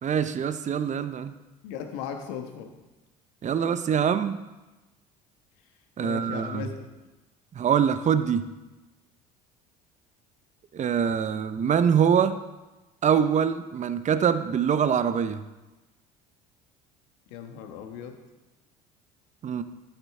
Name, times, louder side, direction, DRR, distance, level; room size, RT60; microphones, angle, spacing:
voice 1, 0.0-1.3 3.4-4.4 6.0-6.6 7.5-8.4 10.7-12.4 13.0-15.4 19.4-19.6, right 8 dB, 35° right, 12 dB, 0.8 m, -24 dB
voice 2, 1.6-2.7 6.0-6.8 17.3-18.2, left 8 dB, 70° left, 5 dB, 1.3 m, -37 dB
12.5 x 8.2 x 3.7 m, 1.1 s
hypercardioid pair, 65°, 20 cm